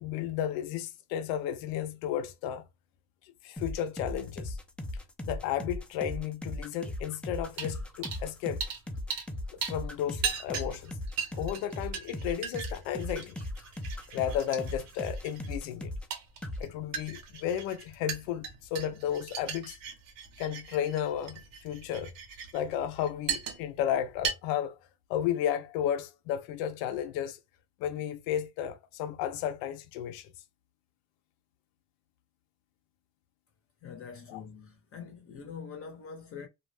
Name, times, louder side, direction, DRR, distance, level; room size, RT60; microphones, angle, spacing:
voice 1, 0.0-2.6 3.4-4.6 5.2-8.6 9.7-11.0 11.3-13.4 14.1-15.9 16.6-19.8 20.4-22.1 22.5-24.8 25.1-27.4 27.8-30.3 34.3-34.4, left 10 dB, 80° left, 0.5 m, -33 dB
sound 1, 3.6-16.1 16.4-16.6, left 1 dB, 5° left, 0.4 m, -38 dB
sound 2, 7.5-7.7 8.0-8.2 8.6-9.3 9.6-23.8 24.2-24.3, right 6 dB, 70° right, 1.0 m, -38 dB
voice 2, 33.8-36.5, left 6 dB, 40° left, 0.7 m, -44 dB
2.3 x 2.0 x 3.2 m
cardioid pair, 110°, 36 cm